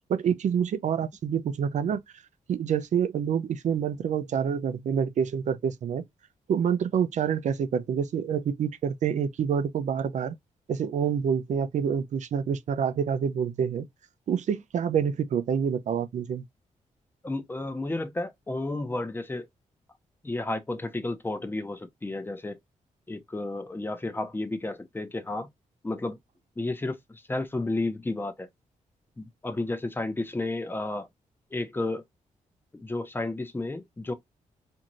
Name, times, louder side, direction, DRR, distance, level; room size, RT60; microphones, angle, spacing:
voice 1, 0.1-2.0 2.5-6.0 6.5-10.4 10.7-13.9 14.3-16.4, right 7 dB, 65° right, 0.5 m, -27 dB
voice 2, 17.2-19.5 20.2-22.6 23.1-25.5 25.8-26.2 26.6-28.5 29.2-31.1 31.5-32.0 32.7-34.1, left 2 dB, 15° left, 0.7 m, -32 dB
2.6 x 2.4 x 2.9 m
cardioid pair, 85°, 13 cm